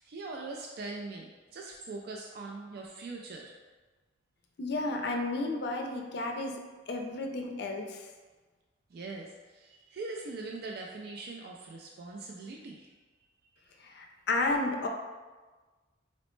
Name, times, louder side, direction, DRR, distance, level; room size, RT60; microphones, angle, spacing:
voice 1, 0.0-3.5 8.9-12.9 13.7-13.9, right 3 dB, 55° right, 0 dB, 0.3 m, -42 dB
voice 2, 4.6-6.6 6.9-8.0 13.8-14.9, left 2 dB, 60° left, 3 dB, 0.4 m, -32 dB
4.1 x 2.0 x 3.1 m, 1.3 s
head